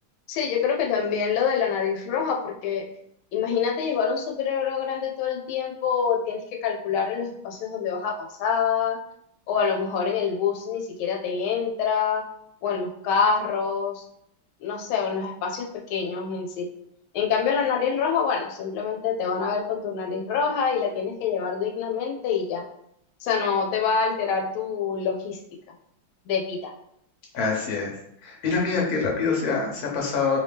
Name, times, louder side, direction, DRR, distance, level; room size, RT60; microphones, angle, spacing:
voice 1, 0.3-2.8 3.3-8.1 8.4-9.0 9.5-12.2 12.6-14.0 14.6-16.7 17.1-22.6 23.2-25.4 26.3-26.7, left 6 dB, 90° left, 1 dB, 1.4 m, -26 dB
voice 2, 27.3-27.9 28.2-30.4, left 4 dB, 55° left, -1 dB, 1.3 m, -25 dB
3.3 x 2.7 x 3.4 m, 0.73 s
omnidirectional pair, 2.2 m